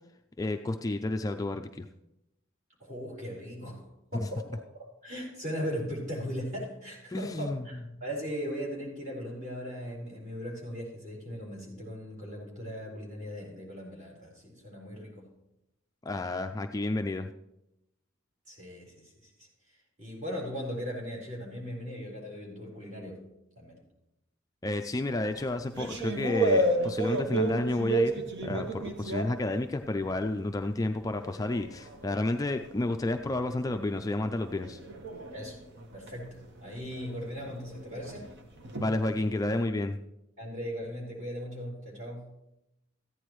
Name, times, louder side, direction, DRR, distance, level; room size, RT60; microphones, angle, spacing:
voice 1, 0.4-1.9 4.1-4.3 7.1-7.6 16.0-17.3 24.6-34.8 38.8-40.0, left 2 dB, 15° left, 6 dB, 0.3 m, -31 dB
voice 2, 2.8-3.8 4.1-15.2 18.5-19.5 20.0-23.2 23.6-23.8 35.3-35.6 35.9-38.3 40.4-42.3, equal, 40° right, -3 dB, 4.2 m, -38 dB
sound 1, 25.1-30.3 30.6-39.6, right 2 dB, 60° right, 1.1 m, -33 dB
14.5 x 10.0 x 3.1 m, 0.87 s
head